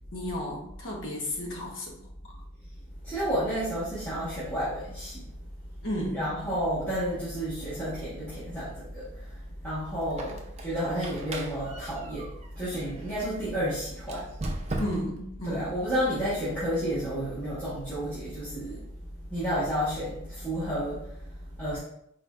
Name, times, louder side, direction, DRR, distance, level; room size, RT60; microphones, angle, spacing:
voice 1, 0.1-2.0 5.8-6.3 14.8-15.7, equal, 60° left, -1 dB, 1.0 m, -33 dB
voice 2, 3.0-5.3 6.1-14.3 15.5-18.8 19.3-21.8, equal, 10° left, -12 dB, 1.1 m, -31 dB
Squeak, 10.0-13.2 14.0-15.3, right 2 dB, 30° right, 0.5 m, -38 dB
4.3 x 4.0 x 2.4 m, 0.76 s
head